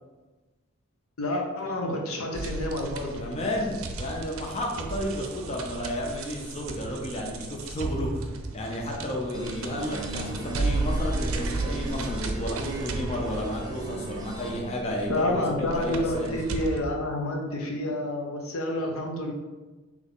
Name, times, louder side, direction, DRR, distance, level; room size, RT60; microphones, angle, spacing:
voice 1, 1.2-3.3 15.1-19.3, left 1 dB, 90° left, 1 dB, 0.8 m, -29 dB
sound 1, 2.3-16.8, right 2 dB, 80° right, 0.5 m, -34 dB
voice 2, 3.2-16.3, equal, 30° left, 0 dB, 0.5 m, -32 dB
sound 2, 9.3-14.6, right 1 dB, 20° right, 0.5 m, -37 dB
3.9 x 3.0 x 3.8 m, 1.2 s
head